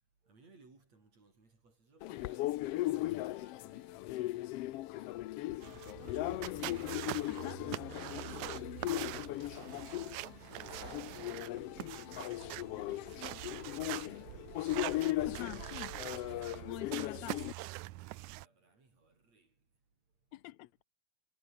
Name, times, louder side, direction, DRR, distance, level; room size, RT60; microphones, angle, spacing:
voice 1, 0.2-6.6 8.1-11.5 11.8-12.6 13.0-14.4 17.8-19.6, right 3 dB, 60° right, 7.3 m, -67 dB
sound 1, 2.0-17.5, left 16 dB, 90° left, 1.3 m, -38 dB
sound 2, 5.6-18.5, right 18 dB, 80° right, 2.1 m, -44 dB
voice 2, 7.3-7.6 15.3-15.9 16.7-17.4 20.3-20.8, left 17 dB, 75° left, 1.8 m, -45 dB
omnidirectional pair, 3.5 m